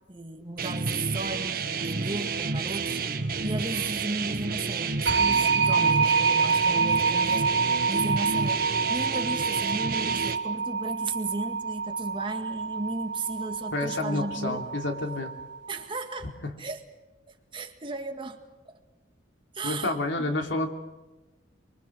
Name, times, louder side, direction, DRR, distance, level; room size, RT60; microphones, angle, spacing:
voice 1, 0.1-8.6 8.9-14.6 15.7-16.3 16.6-16.8 17.3-18.7 19.5-20.3, right 2 dB, 25° right, 4 dB, 2.0 m, -35 dB
sound 1, 0.6-10.4, right 4 dB, 50° right, 1.6 m, -30 dB
sound 2, 5.1-15.7, right 5 dB, 65° right, 4.2 m, -27 dB
voice 2, 13.7-15.3 16.4-16.5 19.6-20.7, left 2 dB, 80° left, 4 dB, 3.1 m, -29 dB
25.0 x 25.0 x 6.4 m, 1.1 s
head